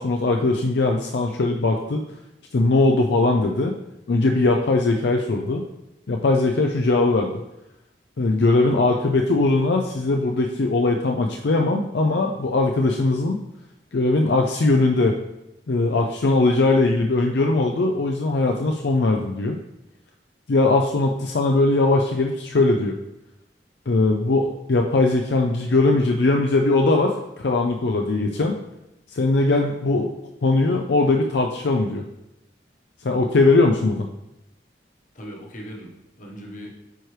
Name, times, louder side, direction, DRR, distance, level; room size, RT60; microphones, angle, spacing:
voice 1, 0.0-2.0 2.5-3.7 4.1-5.6 6.1-7.3 8.2-13.4 13.9-15.2 15.7-19.6 20.5-23.0 23.9-28.6 29.1-30.1 30.4-32.0 33.0-34.1, left 2 dB, 70° left, 2 dB, 0.5 m, -20 dB
voice 2, 35.1-36.8, equal, 45° left, 0 dB, 1.2 m, -39 dB
9.1 x 4.6 x 3.3 m, 0.90 s
head